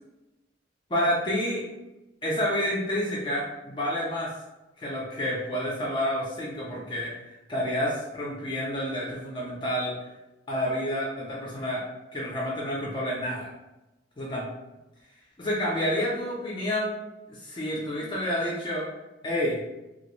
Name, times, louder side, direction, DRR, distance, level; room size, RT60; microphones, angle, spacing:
voice 1, 0.9-1.6 2.2-4.3 4.8-7.1 7.5-10.0 10.5-11.8 12.1-13.5 14.2-14.4 15.4-17.0 17.3-18.9 19.2-19.6, equal, 25° left, -4 dB, 0.4 m, -29 dB
2.3 x 2.0 x 3.0 m, 0.98 s
head